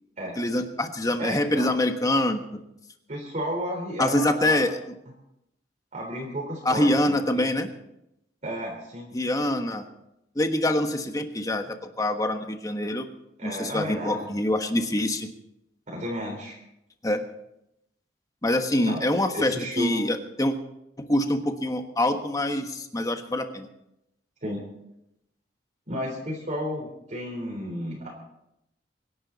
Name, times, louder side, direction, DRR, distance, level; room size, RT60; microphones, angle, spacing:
voice 1, 0.4-2.4 4.0-4.8 6.6-7.7 9.1-9.9 10.3-13.1 13.4-15.3 17.0-17.2 18.4-20.6 21.0-23.7, left 1 dB, 20° left, 6 dB, 1.3 m, -25 dB
voice 2, 1.2-1.7 3.1-4.6 5.9-7.5 8.4-9.1 13.4-14.3 15.9-16.6 18.9-19.0 19.3-20.0 24.4-24.6 25.9-28.1, equal, 40° right, -2 dB, 3.8 m, -32 dB
25.0 x 11.0 x 4.1 m, 0.83 s
head